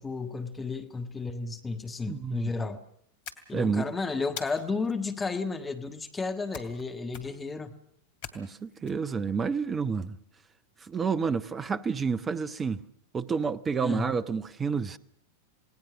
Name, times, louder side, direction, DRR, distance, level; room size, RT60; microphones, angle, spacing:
voice 1, 0.0-2.8 3.5-7.7 13.8-14.1, left 4 dB, 15° left, 1.5 m, -33 dB
voice 2, 2.1-2.8 3.5-3.9 8.3-10.2 10.8-12.8 13.1-15.0, right 5 dB, 20° right, 1.0 m, -29 dB
sound 1, 3.2-3.8 4.4-4.9 6.5-6.8 7.1-7.5 8.2-8.9, left 7 dB, 50° left, 2.6 m, -43 dB
28.5 x 19.0 x 6.3 m
figure-of-eight pair, 90°, 0 cm